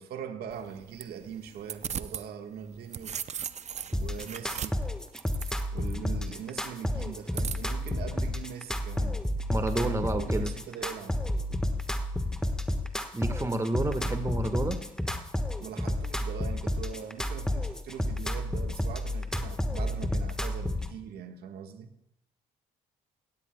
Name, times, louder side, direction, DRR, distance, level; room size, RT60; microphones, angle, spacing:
voice 1, 0.0-3.2 3.9-4.8 5.7-9.2 9.6-11.2 15.6-21.9, right 7 dB, 75° right, 5 dB, 1.5 m, -41 dB
sound 1, 0.5-2.3 2.6-5.9 7.3-7.9, right 8 dB, 45° right, 0.6 m, -38 dB
sound 2, 3.9-20.9, left 1 dB, 5° left, 1.3 m, -31 dB
voice 2, 9.5-10.5 13.1-14.8, right 2 dB, 15° right, 7 dB, 1.5 m, -29 dB
16.5 x 16.5 x 2.3 m, 0.85 s
supercardioid pair, 70°, 16 cm